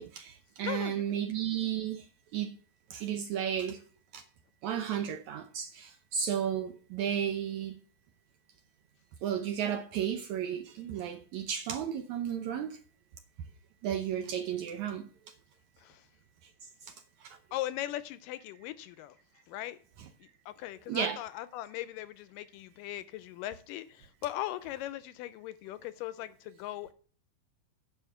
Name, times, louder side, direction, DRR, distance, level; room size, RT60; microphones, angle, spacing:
voice 1, 0.0-2.1 2.3-2.5 2.9-3.8 4.1-4.2 4.6-7.8 9.2-12.8 13.8-15.1 17.2-17.4 20.9-21.2, right 9 dB, 75° right, 1.8 m, -33 dB
voice 2, 0.6-1.2 15.8-16.1 17.5-19.2 19.5-19.8 20.2-26.9, left 14 dB, 80° left, 2.1 m, -39 dB
9.4 x 6.0 x 8.2 m
omnidirectional pair, 4.1 m